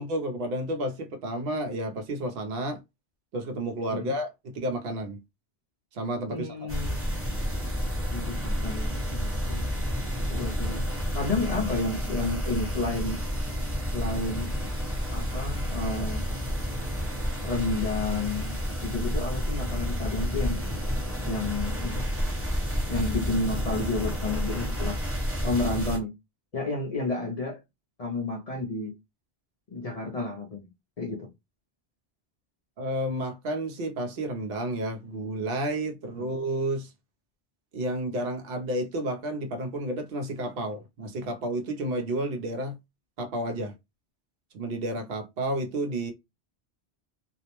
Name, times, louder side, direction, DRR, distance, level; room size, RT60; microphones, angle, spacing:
voice 1, 0.0-2.8 3.3-5.2 5.9-6.7 9.4-9.5 32.8-36.9 37.7-42.8 43.2-43.7 44.5-46.1, right 1 dB, 60° right, 0.8 m, -31 dB
voice 2, 6.3-7.0 8.1-9.7 10.3-10.9 11.1-13.2 13.9-14.5 15.1-16.3 17.4-20.6 21.2-22.1 22.9-25.0 25.4-26.2 26.5-27.6 28.0-29.0 29.7-30.7 31.0-31.3 36.1-36.2, left 3 dB, 45° left, 0.5 m, -31 dB
sound 1, 6.7-26.0, equal, 15° right, 0.9 m, -30 dB
2.5 x 2.0 x 2.9 m
omnidirectional pair, 1.1 m